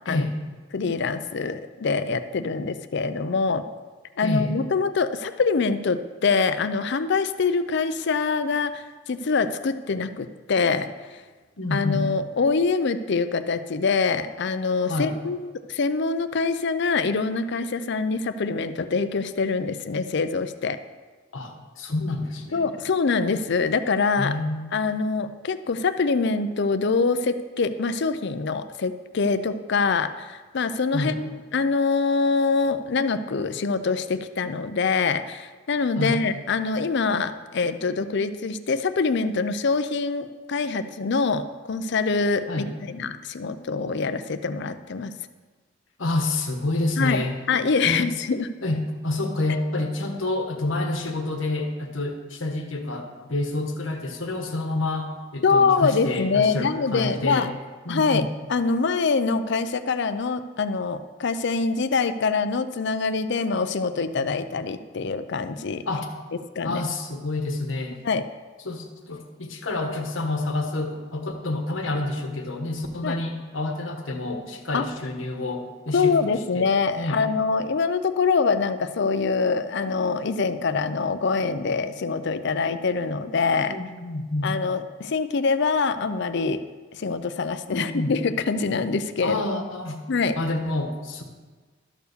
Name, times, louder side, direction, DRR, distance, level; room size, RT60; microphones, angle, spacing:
voice 1, 0.7-3.6 4.2-10.9 11.7-20.8 22.5-24.4 24.7-45.1 47.0-47.2 47.5-48.5 55.4-57.5 57.9-65.8 66.6-66.8 68.0-68.2 73.0-73.2 74.7-74.9 75.9-83.8 84.4-86.6 86.9-89.4 90.1-90.4, left 4 dB, 65° left, 11 dB, 0.5 m, -24 dB
voice 2, 4.2-4.5 11.6-12.1 14.9-15.1 21.3-22.7 24.2-24.7 30.9-31.2 36.0-36.3 42.5-42.7 46.0-47.3 47.8-48.0 48.6-57.5 57.8-58.2 65.9-66.1 66.6-67.9 68.6-76.7 76.9-77.2 83.7-84.5 87.7-88.1 89.2-90.0 90.4-91.2, left 2 dB, 85° left, 4 dB, 1.3 m, -28 dB
12.5 x 4.6 x 6.8 m, 1.4 s
head